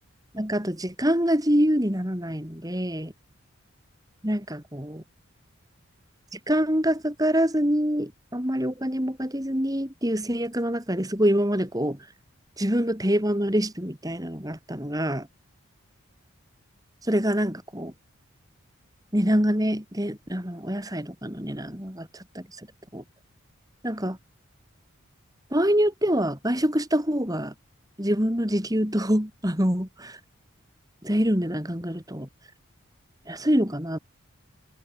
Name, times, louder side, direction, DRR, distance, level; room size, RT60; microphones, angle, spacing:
voice 1, 0.3-3.1 4.2-5.0 6.3-12.1 12.6-15.3 17.0-17.9 19.1-22.7 22.9-23.0 23.8-24.2 25.5-27.5 28.0-30.2 31.0-32.3 33.3-34.0, equal, 15° right, 4.2 m, -25 dB
head